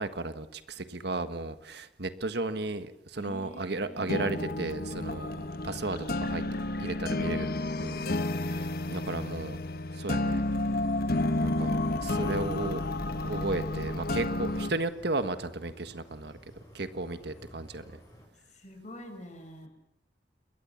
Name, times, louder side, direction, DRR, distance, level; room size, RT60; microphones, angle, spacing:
voice 1, 0.0-5.3 5.6-6.4 6.8-7.5 7.8-8.1 8.5-9.6 9.9-10.4 11.4-12.8 13.2-16.3 16.7-18.0, right 2 dB, 65° right, 10 dB, 1.6 m, -34 dB
voice 2, 3.2-4.3 4.9-5.7 7.8-8.6 18.5-19.7, equal, 40° left, 5 dB, 6.9 m, -46 dB
sound 1, 4.0-14.7, left 2 dB, 60° left, 1.3 m, -31 dB
sound 2, 10.5-18.3, equal, 20° left, 6.8 m, -54 dB
28.0 x 22.5 x 7.3 m, 0.79 s
head